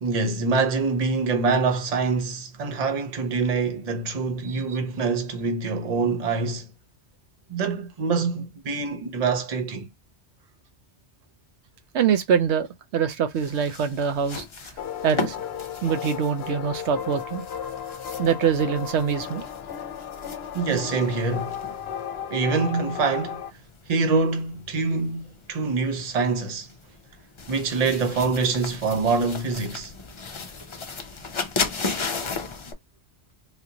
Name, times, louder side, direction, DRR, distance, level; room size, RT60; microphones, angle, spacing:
voice 1, 0.0-6.7 7.5-9.9 20.5-21.5 22.3-23.4 23.9-26.7 27.5-29.9, right 4 dB, 40° right, 0.7 m, -25 dB
voice 2, 11.9-14.5 15.0-15.4 15.8-17.4 18.2-19.4, right 7 dB, 90° right, 0.9 m, -24 dB
sound 1, 13.3-32.7, left 4 dB, 40° left, 0.4 m, -36 dB
sound 2, 14.8-23.5, left 8 dB, 70° left, 0.8 m, -34 dB
3.5 x 2.5 x 2.8 m
omnidirectional pair, 1.1 m